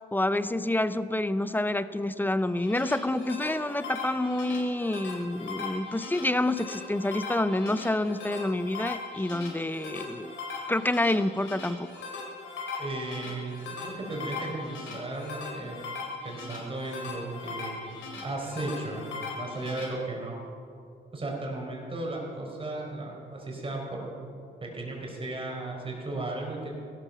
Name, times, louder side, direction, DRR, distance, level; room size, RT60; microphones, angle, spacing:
voice 1, 0.1-10.3 10.7-11.9, left 1 dB, 10° left, 13 dB, 0.6 m, -28 dB
sound 1, 2.4-19.8, left 4 dB, 80° left, 4.5 m, -39 dB
voice 2, 12.8-15.8 16.2-17.9 18.2-20.4 21.1-24.1 24.6-26.7, right 2 dB, 25° right, -1 dB, 4.8 m, -35 dB
16.5 x 13.0 x 5.9 m, 2.5 s
cardioid pair, 90°, 20 cm